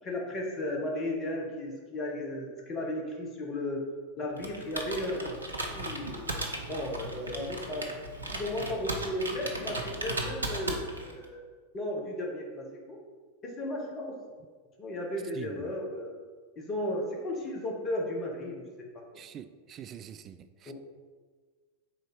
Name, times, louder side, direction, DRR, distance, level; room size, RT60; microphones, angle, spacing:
voice 1, 0.0-3.8 4.2-6.4 6.7-7.9 8.3-11.4 11.7-13.0 13.4-14.2 14.8-16.1 16.6-19.2 20.6-20.7, left 1 dB, 30° left, 1.2 m, -35 dB
Computer keyboard, 4.4-11.2, right 1 dB, 80° right, 0.7 m, -36 dB
voice 2, 19.2-20.7, right 9 dB, 30° right, 0.3 m, -45 dB
4.8 x 3.9 x 5.2 m
figure-of-eight pair, 90°, 0 cm